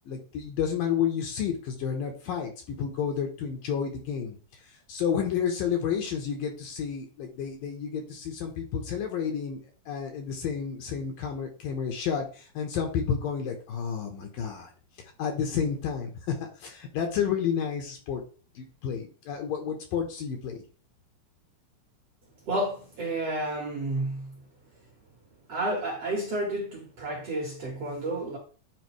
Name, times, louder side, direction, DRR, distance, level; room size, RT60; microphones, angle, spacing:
voice 1, 0.1-4.4 4.9-14.7 15.2-18.2 18.6-20.6, left 7 dB, 70° left, 2.4 m, -31 dB
voice 2, 22.5-24.4 25.5-28.4, right 1 dB, 55° right, 1.9 m, -31 dB
9.6 x 4.2 x 3.1 m
omnidirectional pair, 4.6 m